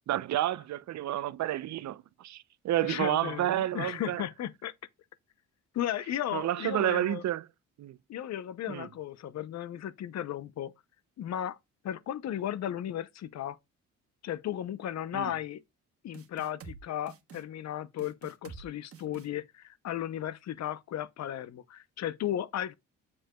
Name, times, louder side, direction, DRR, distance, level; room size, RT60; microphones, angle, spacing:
voice 1, 0.1-4.2 6.3-7.4 7.8-8.0 8.7-8.9 15.1-15.3, right 13 dB, 65° right, 0.6 m, -30 dB
voice 2, 2.8-4.7 5.7-7.2 8.1-10.7 11.2-11.6 11.8-13.6 14.2-15.6 16.0-22.7, left 11 dB, 60° left, 0.7 m, -35 dB
sound 1, 16.1-16.8 17.1-17.4 18.0-18.6 18.9-19.3, right 6 dB, 50° right, 1.4 m, -47 dB
7.5 x 7.2 x 2.2 m
cardioid pair, 90°, 30 cm